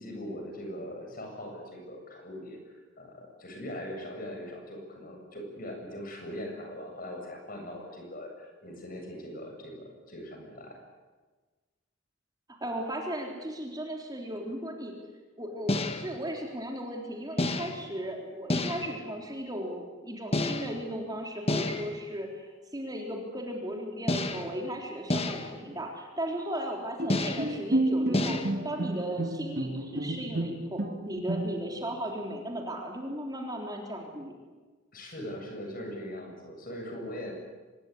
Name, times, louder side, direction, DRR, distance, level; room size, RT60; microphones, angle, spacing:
voice 1, 0.0-10.8 34.9-37.3, equal, 45° left, 2 dB, 7.6 m, -41 dB
voice 2, 12.6-14.9 15.4-28.4 28.6-30.8 31.1-34.3, right 1 dB, 20° right, 1 dB, 3.8 m, -36 dB
sound 1, 15.7-16.2 17.4-17.9 18.5-19.0 20.3-20.9 21.5-22.0 24.1-24.6 25.1-25.6 27.1-27.6 28.1-28.5, left 2 dB, 30° left, 1.6 m, -30 dB
Bowed string instrument, 27.0-31.8, right 1 dB, 50° right, 1.9 m, -30 dB
25.0 x 21.0 x 9.8 m, 1.3 s
head